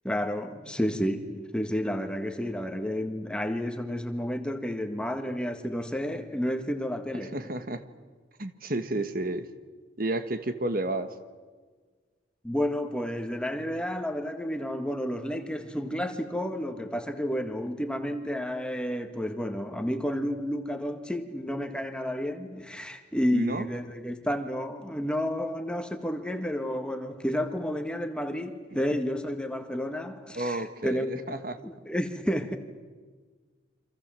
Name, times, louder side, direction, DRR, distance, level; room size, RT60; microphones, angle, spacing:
voice 1, 0.0-7.4 12.4-31.2 31.6-32.6, equal, 5° left, 1.8 m, -31 dB
voice 2, 7.3-7.8 8.4-9.5 10.0-11.1 23.3-23.7 30.3-31.6, right 1 dB, 50° right, 1.5 m, -31 dB
29.0 x 26.0 x 7.6 m
head